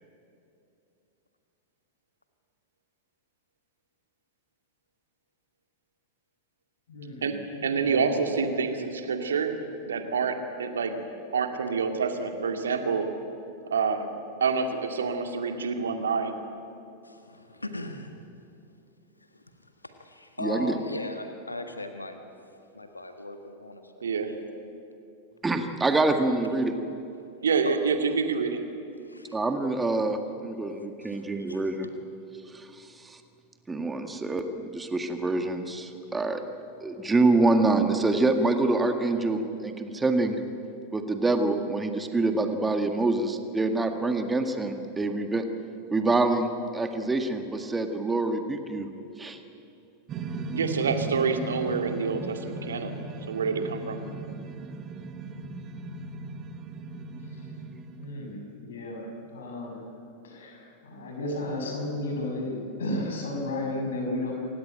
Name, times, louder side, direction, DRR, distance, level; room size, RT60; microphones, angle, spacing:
voice 1, 6.9-8.5 57.3-57.5 57.9-59.0 59.3-59.8 60.2-64.3, left 1 dB, 65° left, 1 dB, 6.8 m, -34 dB
voice 2, 7.6-9.6 9.9-11.0 11.3-13.1 13.7-14.1 14.4-16.4 24.0-24.3 27.4-28.6 50.5-52.9 53.3-54.0, right 5 dB, 65° right, 6 dB, 2.2 m, -27 dB
voice 3, 17.0-18.2 19.3-22.2 22.7-24.4 27.6-27.8 29.0-29.4 30.6-31.6, left 2 dB, 85° left, 6 dB, 1.6 m, -39 dB
voice 4, 20.4-20.8 25.4-26.7 29.3-31.9 32.5-33.2 33.7-36.4 36.8-40.4 40.9-45.4 45.9-48.9 49.2-49.4, right 2 dB, 10° right, 6 dB, 1.8 m, -26 dB
sound 1, 50.1-58.5, right 3 dB, 30° right, 1.6 m, -37 dB
28.0 x 16.5 x 9.1 m, 2.7 s
figure-of-eight pair, 90°, 0 cm